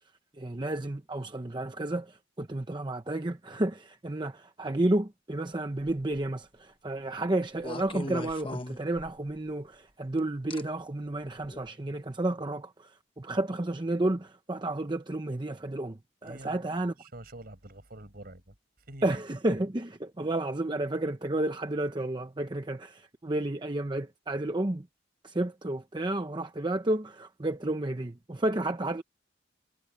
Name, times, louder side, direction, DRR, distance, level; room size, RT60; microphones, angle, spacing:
voice 1, 0.3-16.9 19.0-24.9 25.2-29.0, right 1 dB, 25° right, 0.8 m, -31 dB
sound 1, 5.8-6.3 7.6-9.4 10.5-10.6 11.4-11.6, left 2 dB, 30° left, 1.1 m, -39 dB
voice 2, 16.2-18.5 18.9-19.2, right 1 dB, 55° right, 5.1 m, -47 dB
head